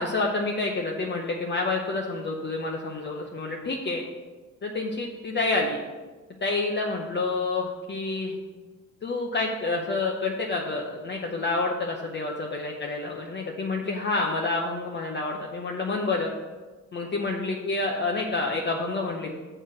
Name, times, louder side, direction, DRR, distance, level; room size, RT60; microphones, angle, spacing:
voice 1, 0.0-4.0 4.6-5.8 6.4-8.4 9.0-16.3 16.9-19.3, left 3 dB, 35° left, 0 dB, 0.8 m, -28 dB
7.6 x 4.6 x 6.2 m, 1.3 s
cardioid pair, 145°, 32 cm